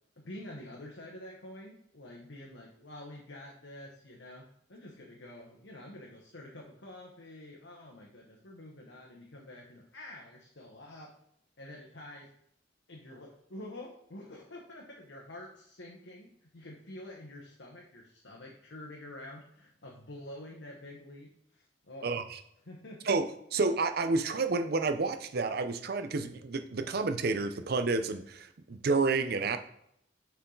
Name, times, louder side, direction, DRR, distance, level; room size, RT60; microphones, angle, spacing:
voice 1, 0.2-11.1 11.6-12.3 12.9-22.1 22.6-23.1, left 1 dB, 80° left, -1 dB, 1.1 m, -48 dB
voice 2, 22.0-22.4 23.0-29.6, right 3 dB, 55° right, 9 dB, 0.6 m, -30 dB
6.9 x 4.7 x 3.9 m, 0.73 s
head